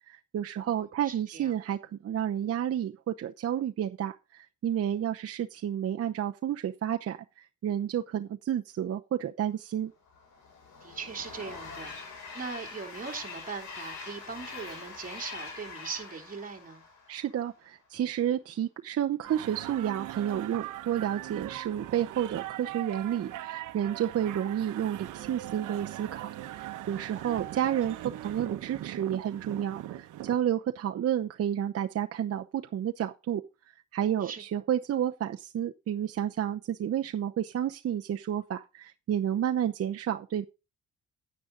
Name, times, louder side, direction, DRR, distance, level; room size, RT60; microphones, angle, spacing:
voice 1, 0.1-9.9 17.1-33.4 33.9-40.4, right 10 dB, 50° right, 0.8 m, -31 dB
voice 2, 0.6-1.5 10.8-16.8 27.2-27.6 34.2-34.4, right 5 dB, 30° right, 2.8 m, -40 dB
Train, 10.1-17.5, left 4 dB, 80° left, 6.4 m, -44 dB
sound 1, 19.2-30.4, right 13 dB, 80° right, 1.0 m, -40 dB
10.0 x 9.4 x 3.9 m
cardioid pair, 90°, 30 cm